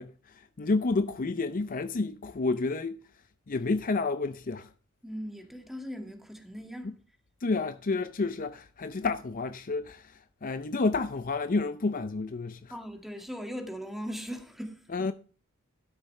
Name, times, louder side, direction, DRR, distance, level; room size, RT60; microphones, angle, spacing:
voice 1, 0.0-3.1 3.5-4.7 6.8-6.9 7.4-12.7 14.9-15.1, left 3 dB, 40° left, 0.5 m, -30 dB
voice 2, 5.0-7.0 12.7-14.9, equal, ahead, 2.0 m, -39 dB
12.5 x 10.0 x 3.2 m
head